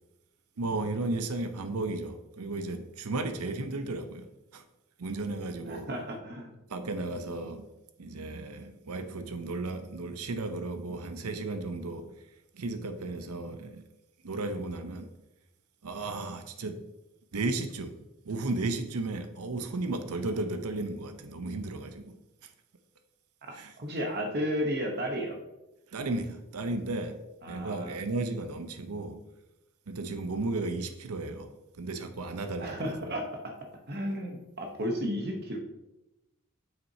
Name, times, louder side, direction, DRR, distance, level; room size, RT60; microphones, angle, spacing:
voice 1, 0.6-4.3 4.5-4.6 5.0-5.9 6.7-7.7 8.0-12.1 12.5-13.8 14.2-15.1 15.8-16.8 17.3-17.9 18.2-22.1 22.4-22.5 23.5-23.7 25.9-27.2 27.5-29.2 29.9-33.1, right 2 dB, 85° right, 0.7 m, -34 dB
voice 2, 5.7-6.5 23.4-25.4 27.4-28.0 32.6-33.6 33.9-35.6, equal, 45° right, 0.9 m, -33 dB
7.4 x 5.9 x 2.7 m
head